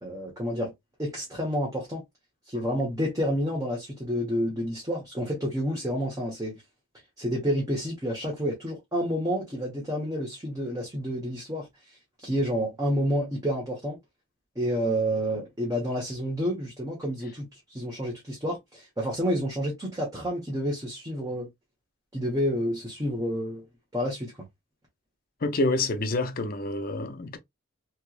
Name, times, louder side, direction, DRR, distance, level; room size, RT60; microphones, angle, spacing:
voice 1, 0.0-0.7 1.0-2.0 2.5-6.6 7.2-11.7 12.2-14.0 14.5-21.5 22.1-23.6 23.9-24.3, equal, 15° right, 1.1 m, -29 dB
voice 2, 25.4-27.4, left 2 dB, 45° left, 0.6 m, -27 dB
3.3 x 3.0 x 2.4 m
head